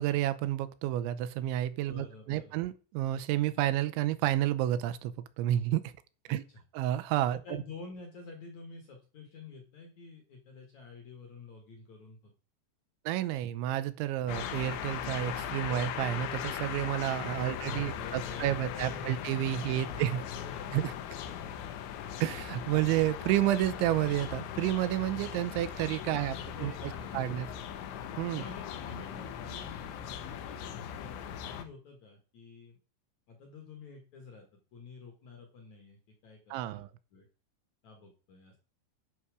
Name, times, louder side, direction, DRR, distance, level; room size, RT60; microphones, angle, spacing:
voice 1, 0.0-5.9 6.3-6.4 6.7-7.6 13.1-20.2 20.7-20.9 22.2-27.5 28.2-28.5 36.5-36.9, right 13 dB, 85° right, 3.0 m, -30 dB
voice 2, 1.9-2.6 6.3-6.6 7.3-12.3 17.4-19.1 19.5-20.8 26.1-27.5 28.4-32.8 33.3-34.5 34.7-36.8 37.1-37.3 37.8-38.5, left 4 dB, 60° left, 2.1 m, -49 dB
sound 1, 14.3-31.7, left 9 dB, 80° left, 3.2 m, -39 dB
11.5 x 6.1 x 4.9 m
omnidirectional pair, 5.3 m